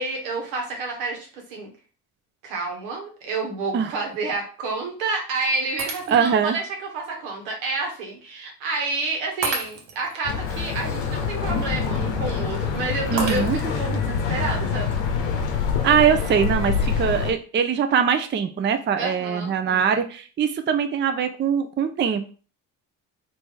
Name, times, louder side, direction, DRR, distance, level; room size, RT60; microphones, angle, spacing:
voice 1, 0.0-1.7 2.4-14.9 19.0-20.0, right 3 dB, 85° right, 1 dB, 1.1 m, -29 dB
Shatter, 5.8-6.5 7.1-7.2 9.4-10.1 13.2-13.9, right 4 dB, 60° right, 1.0 m, -31 dB
voice 2, 6.1-6.6 13.1-13.6 15.8-22.3, right 7 dB, 25° right, 8 dB, 0.4 m, -22 dB
sound 1, 10.2-17.3, left 6 dB, 80° left, 0.7 m, -26 dB
sound 2, 10.5-16.4, left 2 dB, 25° left, 1.0 m, -35 dB
3.1 x 2.7 x 3.5 m, 0.39 s
hypercardioid pair, 50°, 47 cm